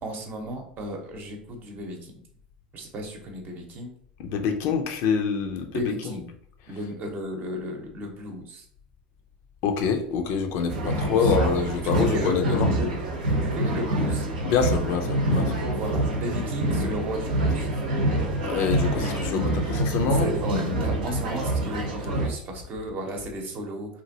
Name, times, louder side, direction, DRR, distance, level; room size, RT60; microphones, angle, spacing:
voice 1, 0.0-2.2 2.7-3.9 5.7-6.2 6.7-8.6 10.8-11.4 11.8-12.9 13.4-14.2 15.7-17.7 20.1-24.0, right 1 dB, 40° right, 0.8 m, -34 dB
voice 2, 4.2-5.7 9.6-12.7 14.4-15.5 18.4-20.3, left 6 dB, 55° left, 0.5 m, -26 dB
sound 1, 10.7-22.3, right 1 dB, 80° right, 0.7 m, -26 dB
2.9 x 2.5 x 2.7 m
hypercardioid pair, 85°, 5 cm